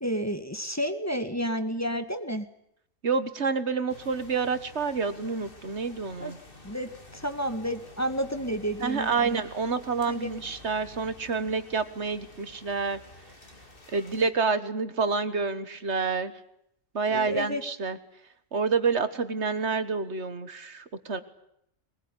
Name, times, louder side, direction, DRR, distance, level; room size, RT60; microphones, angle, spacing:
voice 1, 0.0-2.5 6.2-6.3 6.6-9.4 10.1-10.3 17.1-17.6, equal, 15° left, 7 dB, 1.8 m, -31 dB
voice 2, 3.0-6.4 8.8-13.0 13.9-16.3 16.9-18.0 18.5-21.2, right 4 dB, 65° right, 12 dB, 1.8 m, -28 dB
sound 1, 3.9-14.3, left 2 dB, 45° left, 2.9 m, -50 dB
22.5 x 21.0 x 10.0 m, 0.76 s
omnidirectional pair, 1.3 m